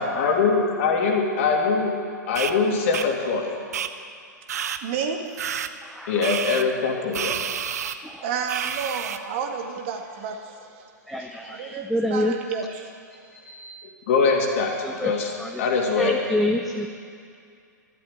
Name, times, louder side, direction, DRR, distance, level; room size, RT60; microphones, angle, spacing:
voice 1, 0.0-1.9 2.3-3.6 6.1-7.4 14.1-15.3 15.6-16.2, left 4 dB, 45° left, 1 dB, 2.7 m, -22 dB
sound 1, 2.4-2.5 2.9-3.1 3.7-3.9 4.5-4.8 5.4-5.7 6.2-6.6 7.1-8.0 8.5-9.2, right 8 dB, 55° right, 0.8 m, -29 dB
voice 2, 4.8-5.2 8.2-10.8 11.4-12.9, right 6 dB, 40° right, 4 dB, 1.8 m, -31 dB
voice 3, 5.8-6.4 8.0-8.3 11.1-12.4 13.3-13.7 14.8-15.1 15.4-15.6 15.9-16.9, left 1 dB, ahead, 2 dB, 0.7 m, -28 dB
12.5 x 11.5 x 9.1 m, 2.3 s
figure-of-eight pair, 110°, 10 cm